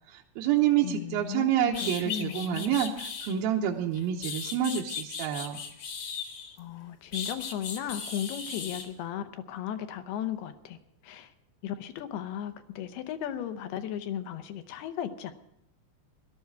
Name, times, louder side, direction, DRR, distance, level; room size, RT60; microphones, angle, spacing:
voice 1, 0.1-5.6, right 10 dB, 75° right, -1 dB, 2.4 m, -28 dB
voice 2, 0.8-2.8 6.6-11.3 11.6-15.3, left 10 dB, 75° left, 9 dB, 2.7 m, -36 dB
sound 1, 1.3-1.4 1.7-3.3 3.9-6.6 7.1-8.9, left 6 dB, 50° left, 1.8 m, -37 dB
18.0 x 12.5 x 4.6 m, 0.76 s
omnidirectional pair, 5.0 m